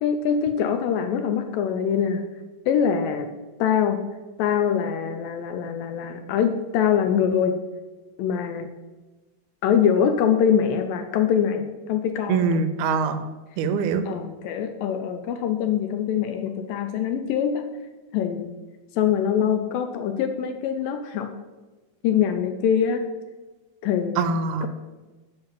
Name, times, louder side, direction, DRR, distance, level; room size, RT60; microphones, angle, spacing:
voice 1, 0.0-2.2 2.7-3.3 3.6-4.0 4.4-7.6 8.2-8.7 9.6-12.6 14.1-17.7 18.1-18.5 19.0-21.3 22.0-23.0 23.8-24.2 24.6-24.7, left 8 dB, 80° left, 7 dB, 2.2 m, -23 dB
voice 2, 12.3-13.2 13.6-14.1 24.2-24.7, right 5 dB, 85° right, 10 dB, 2.6 m, -23 dB
7.8 x 5.7 x 7.3 m, 1.2 s
omnidirectional pair, 4.4 m